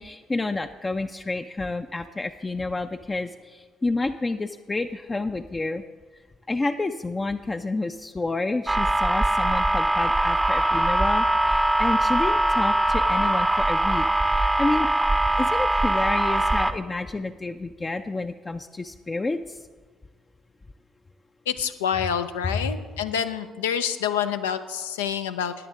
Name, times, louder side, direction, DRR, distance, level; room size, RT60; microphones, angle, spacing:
voice 1, 0.0-5.8 6.5-14.1 14.3-14.9 15.4-19.4 22.6-22.7, left 2 dB, 25° left, 6 dB, 0.4 m, -29 dB
sound 1, 8.7-16.7, right 1 dB, 15° right, 0.6 m, -22 dB
voice 2, 21.5-25.5, left 8 dB, 85° left, 9 dB, 0.4 m, -27 dB
14.5 x 9.7 x 3.7 m, 1.4 s
hypercardioid pair, 50°, 0 cm